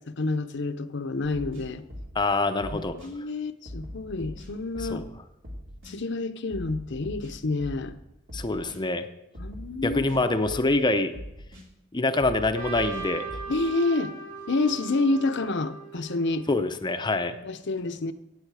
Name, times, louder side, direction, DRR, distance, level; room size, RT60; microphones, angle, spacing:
voice 1, 0.1-1.8 2.9-5.1 5.8-8.0 9.4-10.0 13.5-14.1 14.5-16.5 17.4-18.1, left 3 dB, 60° left, 11 dB, 0.8 m, -28 dB
sound 1, 1.2-2.3 2.6-3.1 3.6-5.1 5.4-5.9 6.5-8.0 8.3-8.8 9.3-10.8 11.1-11.6 12.2-13.6, equal, 70° right, 3.0 m, -41 dB
voice 2, 2.1-2.9 4.8-5.0 8.3-9.0 9.8-11.1 11.9-13.3 16.5-17.4, left 2 dB, 20° left, 8 dB, 0.7 m, -25 dB
Trumpet, 12.5-16.7, right 5 dB, 50° right, 5.0 m, -39 dB
15.5 x 8.9 x 4.9 m, 0.91 s
head